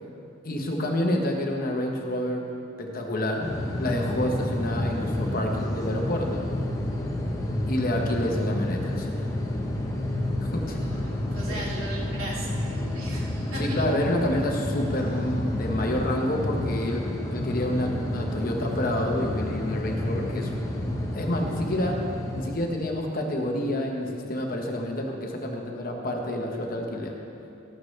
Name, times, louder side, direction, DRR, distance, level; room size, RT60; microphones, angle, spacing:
voice 1, 0.4-2.5 2.8-3.5 3.8-6.4 7.7-9.3 10.5-10.8 11.5-11.6 13.6-20.5 21.1-22.0 22.3-27.2, left 1 dB, 40° left, 1 dB, 1.1 m, -28 dB
sound 1, 3.4-22.5, left 1 dB, 15° left, 0.9 m, -30 dB
voice 2, 10.6-13.9, right 1 dB, 75° right, -6 dB, 2.8 m, -38 dB
13.5 x 13.0 x 3.3 m, 2.9 s
head